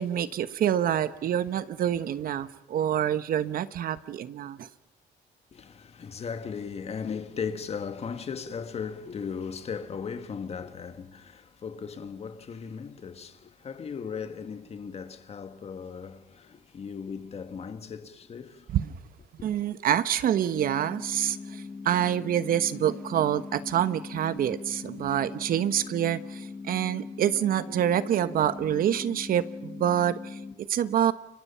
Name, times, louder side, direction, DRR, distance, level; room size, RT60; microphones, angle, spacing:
voice 1, 0.0-4.7 18.7-18.9 19.4-30.4 30.7-31.1, right 10 dB, 60° right, 1.2 m, -27 dB
voice 2, 5.5-18.8, left 6 dB, 40° left, 1.8 m, -37 dB
sound 1, 20.5-30.5, left 4 dB, 20° left, 5.5 m, -41 dB
29.5 x 24.0 x 5.7 m
cardioid pair, 110°, 17 cm